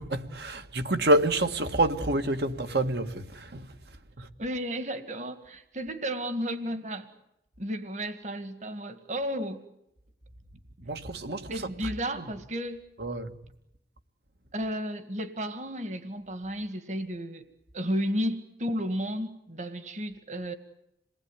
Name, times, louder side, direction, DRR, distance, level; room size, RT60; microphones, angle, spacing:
voice 1, 0.0-4.3 10.8-12.3 13.0-13.4, right 1 dB, 70° right, 1.8 m, -28 dB
voice 2, 4.4-7.1 7.6-9.6 11.5-12.9 14.5-17.5 17.7-20.5, equal, 40° right, 2.0 m, -33 dB
27.5 x 19.5 x 10.0 m
head